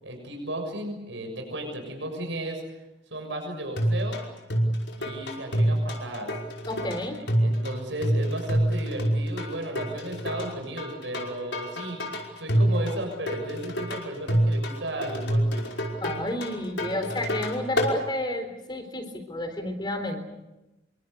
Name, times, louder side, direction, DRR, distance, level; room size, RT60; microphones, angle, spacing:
voice 1, 0.0-2.6 3.1-4.2 4.9-6.3 7.4-15.7, right 1 dB, 85° right, 4 dB, 6.7 m, -34 dB
sound 1, 3.8-18.0, equal, 80° left, 5.3 m, -27 dB
voice 2, 6.7-7.2 16.0-20.2, left 1 dB, 25° left, 6 dB, 3.9 m, -31 dB
27.5 x 24.0 x 6.8 m, 0.98 s
head